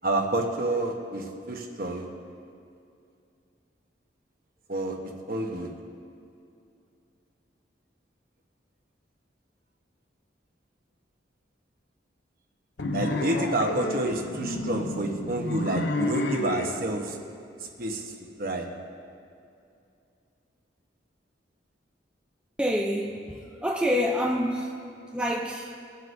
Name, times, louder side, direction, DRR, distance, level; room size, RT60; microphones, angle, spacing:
voice 1, 0.0-2.0 4.7-5.0 5.3-5.7 12.9-17.2 17.6-18.1 18.4-18.7, right 2 dB, 50° right, 2 dB, 1.1 m, -29 dB
sound 1, 12.8-16.8, left 2 dB, 65° left, 0.7 m, -30 dB
voice 2, 22.6-24.8 25.1-25.7, equal, 5° right, 0 dB, 0.5 m, -27 dB
23.0 x 7.8 x 2.7 m, 2.5 s
head